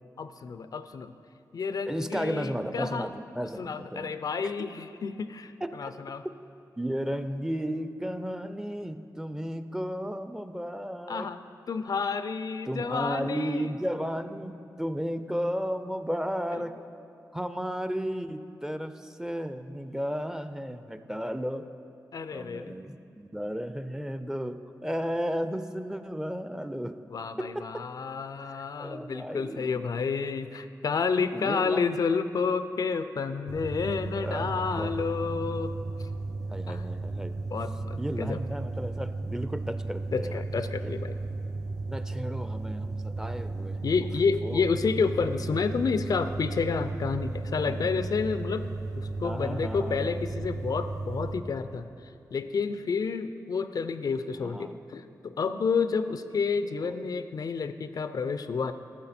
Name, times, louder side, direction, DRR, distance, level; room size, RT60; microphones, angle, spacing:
voice 1, 0.2-1.1 1.5-3.1 3.6-6.3 11.1-11.4 11.7-13.8 16.6-16.7 22.1-22.7 27.1-35.7 36.0-36.1 36.7-36.8 37.5-38.4 40.1-41.2 43.8-48.7 49.0-51.9 52.3-58.7, left 5 dB, 65° left, 11 dB, 0.4 m, -30 dB
voice 2, 1.9-4.2 4.4-4.5 5.6-5.9 6.2-6.3 6.8-11.3 12.7-16.8 17.3-21.7 22.3-27.0 27.4-27.9 28.4-29.8 31.3-31.9 34.1-35.1 36.5-37.4 38.0-40.4 41.8-43.8 44.4-44.6 47.7-47.9 49.2-50.2 54.4-54.8 56.8-57.0, equal, 10° right, 10 dB, 0.5 m, -34 dB
sound 1, 33.5-51.3, right 3 dB, 60° right, 1.0 m, -34 dB
12.0 x 7.3 x 4.3 m, 2.6 s
cardioid pair, 50°, 7 cm